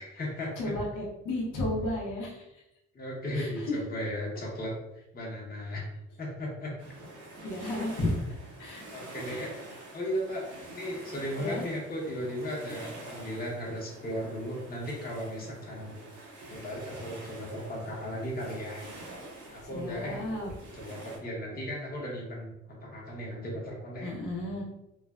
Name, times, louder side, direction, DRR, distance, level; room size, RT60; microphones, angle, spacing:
voice 1, 0.0-0.7 2.9-4.7 5.1-5.8 6.2-6.7 8.9-9.5 9.9-16.0 16.5-18.8 19.5-20.3 20.7-24.1, equal, 30° left, -3 dB, 0.9 m, -36 dB
voice 2, 0.6-2.4 3.3-3.8 7.4-8.1 8.6-8.8 9.2-9.4 11.4-11.7 19.7-20.5 24.0-24.6, left 1 dB, 80° left, -3 dB, 0.8 m, -33 dB
sound 1, 6.8-21.2, right 2 dB, 75° right, 1.0 m, -47 dB
3.2 x 2.2 x 2.3 m, 0.88 s
cardioid pair, 90°, 30 cm